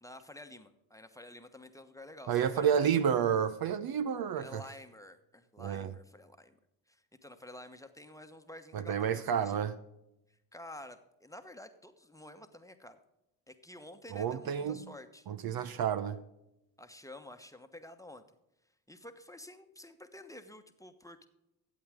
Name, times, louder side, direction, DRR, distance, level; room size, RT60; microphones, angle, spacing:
voice 1, 0.0-2.9 4.4-6.6 6.9-9.6 10.5-13.0 13.5-15.3 16.8-18.2 18.9-21.3, left 1 dB, 5° left, 1.1 m, -50 dB
voice 2, 2.3-4.6 5.6-5.9 8.7-9.8 14.1-14.9 15.3-16.2, right 8 dB, 50° right, 0.8 m, -30 dB
14.0 x 8.1 x 3.6 m
hypercardioid pair, 55°, 46 cm